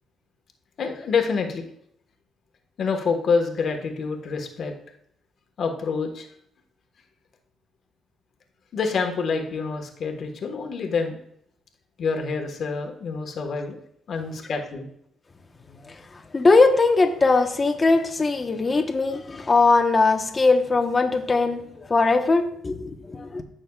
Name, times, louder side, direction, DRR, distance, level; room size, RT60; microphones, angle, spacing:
voice 1, 0.8-1.7 2.8-4.7 5.6-6.3 8.7-11.2 12.0-13.8 14.1-14.9, left 5 dB, 60° left, 3 dB, 1.5 m, -27 dB
voice 2, 16.3-23.4, left 3 dB, 30° left, 5 dB, 1.1 m, -20 dB
15.0 x 6.3 x 2.4 m, 0.73 s
cardioid pair, 90°, 0 cm